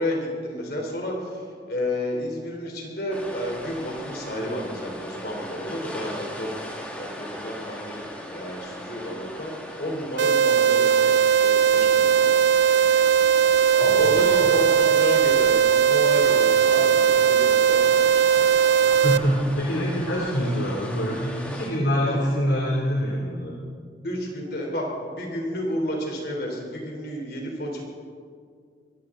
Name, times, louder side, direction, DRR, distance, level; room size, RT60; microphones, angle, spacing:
voice 1, 0.0-1.4 1.7-6.6 6.9-9.5 9.8-11.1 11.4-12.3 13.7-18.5 20.4-20.5 22.1-22.2 24.0-27.8, left 1 dB, 55° left, 0 dB, 3.2 m, -31 dB
sound 1, 3.1-21.7, equal, 10° left, 1.8 m, -38 dB
sound 2, 10.2-19.2, right 7 dB, 80° right, 0.5 m, -19 dB
voice 2, 13.9-14.5 18.8-23.5, equal, 80° left, -3 dB, 2.6 m, -25 dB
22.5 x 16.0 x 3.7 m, 2.1 s
head